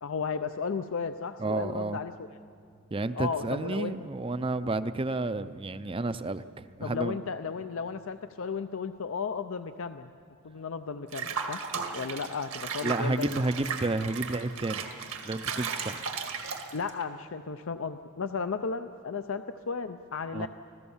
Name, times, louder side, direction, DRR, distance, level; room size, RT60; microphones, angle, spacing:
voice 1, 0.0-2.1 3.1-3.9 6.8-10.1 10.4-11.6 11.9-13.5 16.7-20.5, left 5 dB, 65° left, 9 dB, 0.5 m, -34 dB
voice 2, 1.4-2.0 2.9-7.2 12.8-14.8 15.2-16.0 20.3-20.5, right 2 dB, 25° right, 13 dB, 0.5 m, -31 dB
Water / Bathtub (filling or washing), 11.1-17.0, right 5 dB, 80° right, 1.9 m, -36 dB
26.5 x 16.0 x 7.2 m, 2.4 s
head